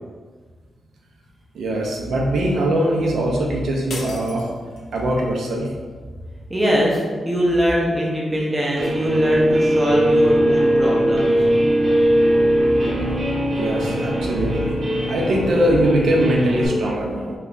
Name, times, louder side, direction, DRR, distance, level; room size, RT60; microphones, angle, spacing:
voice 1, 1.5-4.5 4.9-5.7 13.5-14.8 15.1-17.3, right 1 dB, 70° right, -1 dB, 0.6 m, -21 dB
sound 1, 3.9-5.2, left 2 dB, 60° left, 0.6 m, -36 dB
voice 2, 6.5-11.3, equal, 10° right, -4 dB, 0.7 m, -21 dB
Guitar, 8.8-16.7, equal, 55° right, 1.0 m, -20 dB
3.2 x 2.3 x 3.9 m, 1.5 s
wide cardioid pair, 155°, 0 cm